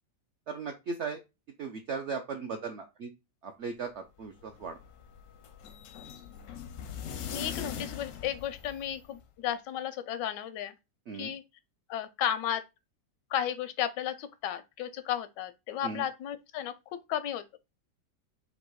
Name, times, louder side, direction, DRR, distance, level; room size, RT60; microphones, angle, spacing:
voice 1, 0.5-1.2 1.6-3.1 3.4-4.8 11.1-11.3 15.8-16.0, right 5 dB, 75° right, 0.6 m, -37 dB
sound 1, 4.2-9.2, left 8 dB, 70° left, 0.7 m, -42 dB
voice 2, 7.3-10.7 11.1-11.4 11.9-12.6 13.3-17.6, left 10 dB, 85° left, 1.3 m, -34 dB
4.0 x 2.7 x 4.6 m
omnidirectional pair, 1.9 m